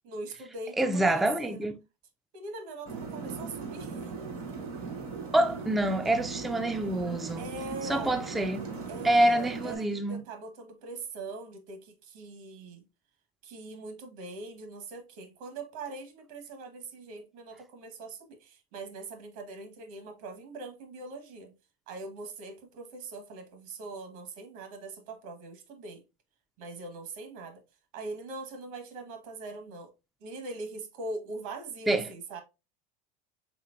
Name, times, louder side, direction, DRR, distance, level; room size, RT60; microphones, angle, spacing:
voice 1, 0.0-1.7 2.3-4.1 7.4-8.2 8.9-12.8 13.4-21.5 21.9-26.0 26.6-27.6 27.9-29.9 30.2-32.4, right 3 dB, 70° right, 1.4 m, -42 dB
voice 2, 0.8-1.7 5.3-7.5 7.9-8.7 9.0-10.2 31.9-32.0, right 1 dB, ahead, 0.3 m, -26 dB
sound 1, 2.8-9.8, right 4 dB, 90° right, 2.7 m, -39 dB
4.4 x 3.7 x 2.5 m
supercardioid pair, 120°, 18 cm